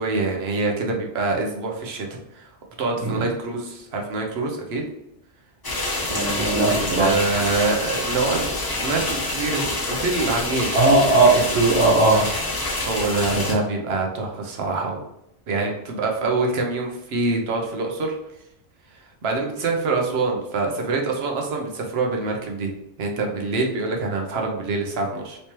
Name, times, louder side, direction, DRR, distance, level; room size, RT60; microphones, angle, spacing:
voice 1, 0.0-2.5 2.8-4.8 6.5-8.5 8.8-11.0 12.1-12.2 12.8-15.0 15.5-18.1 18.9-22.7 23.0-25.4, right 3 dB, 65° right, 1 dB, 0.9 m, -25 dB
sound 1, 5.6-13.5, left 2 dB, 25° left, 0.5 m, -27 dB
voice 2, 6.1-7.1 10.7-12.2, right 2 dB, 85° right, -2 dB, 1.4 m, -18 dB
3.2 x 3.0 x 2.8 m, 0.81 s
omnidirectional pair, 1.2 m